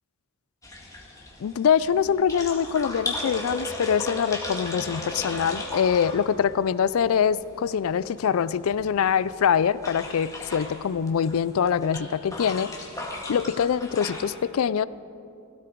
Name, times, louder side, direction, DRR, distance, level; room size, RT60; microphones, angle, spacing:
sound 1, 0.6-14.2, left 2 dB, 15° left, 2.1 m, -37 dB
voice 1, 1.4-12.7 13.3-14.9, left 7 dB, 75° left, 18 dB, 0.4 m, -24 dB
17.0 x 16.5 x 4.6 m, 2.6 s
head